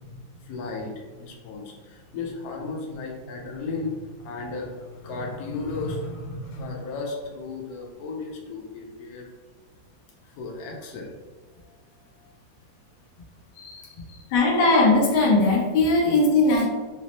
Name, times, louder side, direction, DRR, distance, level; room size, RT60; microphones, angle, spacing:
voice 1, 0.0-9.2 10.2-11.1 13.5-14.3, left 3 dB, 65° left, -1 dB, 1.0 m, -35 dB
voice 2, 14.3-16.7, left 2 dB, 90° left, -2 dB, 1.7 m, -19 dB
5.3 x 2.0 x 2.9 m, 1.3 s
omnidirectional pair, 2.1 m